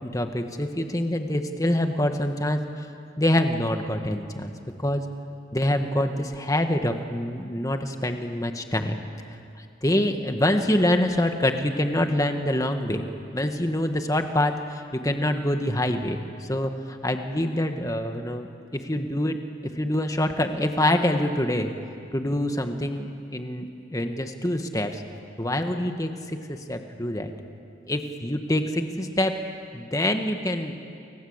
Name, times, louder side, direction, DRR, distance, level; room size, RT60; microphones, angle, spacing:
voice 1, 0.0-2.9 3.2-4.5 4.8-5.0 5.5-9.0 9.3-13.1 13.3-18.5 18.7-19.4 19.7-21.7 22.1-25.0 25.4-27.3 27.9-29.4 29.7-30.8, left 1 dB, 15° left, 6 dB, 1.6 m, -25 dB
29.5 x 24.5 x 8.2 m, 2.5 s
head